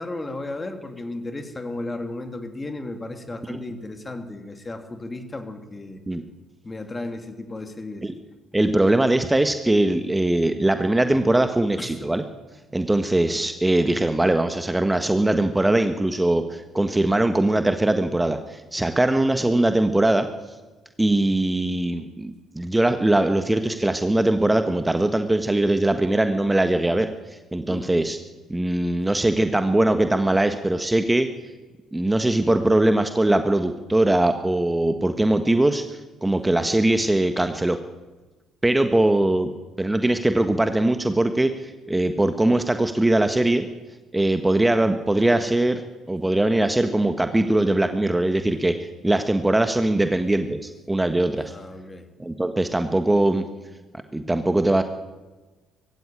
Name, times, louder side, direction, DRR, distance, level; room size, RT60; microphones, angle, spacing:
voice 1, 0.0-6.0 6.6-8.1 11.8-12.0 27.7-27.9 50.0-50.1 51.4-52.1, left 2 dB, 25° left, 6 dB, 3.0 m, -34 dB
voice 2, 8.5-12.2 12.7-20.3 21.0-22.3 22.5-27.1 27.5-28.2 28.5-31.3 31.9-35.8 36.2-37.8 38.6-39.5 39.8-43.7 44.1-45.8 46.1-51.5 52.2-53.4 54.1-54.8, right 1 dB, 15° right, 8 dB, 1.5 m, -21 dB
19.5 x 16.0 x 8.9 m, 1.2 s
hypercardioid pair, 55°, 0 cm